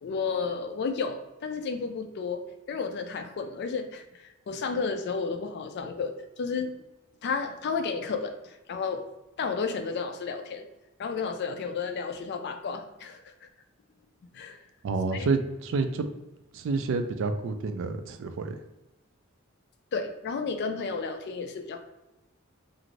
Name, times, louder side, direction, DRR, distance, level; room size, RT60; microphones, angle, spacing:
voice 1, 0.0-6.8 7.2-9.0 9.4-10.7 11.0-13.5 14.3-14.6 15.1-15.3 19.9-21.8, left 5 dB, 50° left, 7 dB, 0.3 m, -32 dB
voice 2, 14.8-16.1 16.5-18.5, right 4 dB, 65° right, 8 dB, 0.3 m, -29 dB
2.5 x 2.5 x 3.0 m, 0.99 s
head